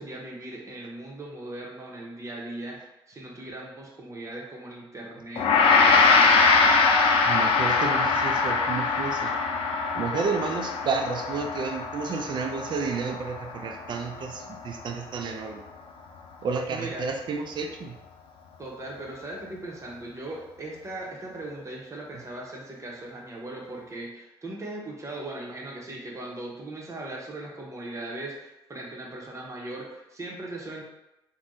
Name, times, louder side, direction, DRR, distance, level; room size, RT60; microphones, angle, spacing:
voice 1, 0.0-6.4 16.7-17.1 18.6-30.8, right 2 dB, 30° right, -2 dB, 0.9 m, -39 dB
Gong, 5.4-14.7, left 4 dB, 75° left, 0.4 m, -22 dB
voice 2, 7.3-9.3 10.0-15.6 16.4-18.0, right 5 dB, 55° right, 4 dB, 0.4 m, -31 dB
3.3 x 2.2 x 2.6 m, 0.92 s
cardioid pair, 70°, 10 cm